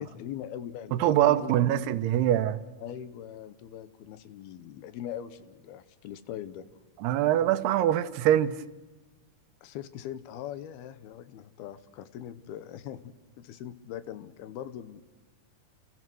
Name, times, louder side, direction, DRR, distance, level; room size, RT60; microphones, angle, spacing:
voice 1, 0.0-1.6 2.8-6.7 9.6-15.0, left 10 dB, 80° left, 3.0 m, -41 dB
voice 2, 0.9-2.6 7.0-8.6, right 12 dB, 85° right, 3.0 m, -23 dB
29.5 x 28.5 x 6.3 m
omnidirectional pair, 4.5 m